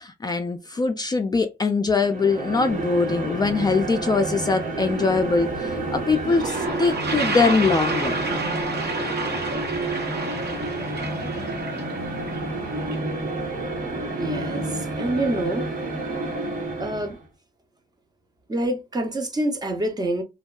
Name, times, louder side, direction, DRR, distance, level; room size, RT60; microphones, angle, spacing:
voice 1, 0.0-8.2, left 4 dB, 25° left, 0.3 m, -22 dB
sound 1, 2.0-17.2, right 2 dB, 50° right, 1.2 m, -30 dB
Toilet flush, 5.8-5.9 6.1-13.0, right 3 dB, 70° right, 0.9 m, -30 dB
voice 2, 14.2-15.7 16.8-17.2 18.5-20.2, right 1 dB, 25° right, 0.6 m, -26 dB
2.6 x 2.2 x 2.3 m
cardioid pair, 100°, 17 cm